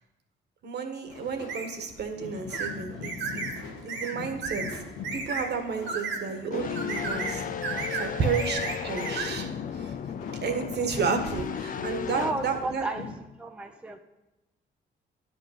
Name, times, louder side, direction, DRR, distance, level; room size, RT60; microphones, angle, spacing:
voice 1, 0.6-3.4 3.8-4.7 5.1-9.9 10.4-12.9, right 5 dB, 60° right, 5 dB, 1.4 m, -32 dB
sound 1, 1.1-13.2, left 4 dB, 85° left, 1.4 m, -41 dB
sound 2, 1.5-1.7 2.5-2.7 3.0-3.5 3.9-4.1 4.4-4.7 5.0-5.5 5.9-6.2 6.8-7.4 7.6-8.1 8.3-9.3, right 4 dB, 75° right, 1.6 m, -33 dB
sound 3, 6.5-12.3, left 8 dB, 45° left, 0.4 m, -35 dB
voice 2, 12.2-13.1 13.4-14.0, right 2 dB, 5° right, 4 dB, 0.7 m, -33 dB
10.5 x 5.6 x 5.7 m, 1.0 s
cardioid pair, 90°, 20 cm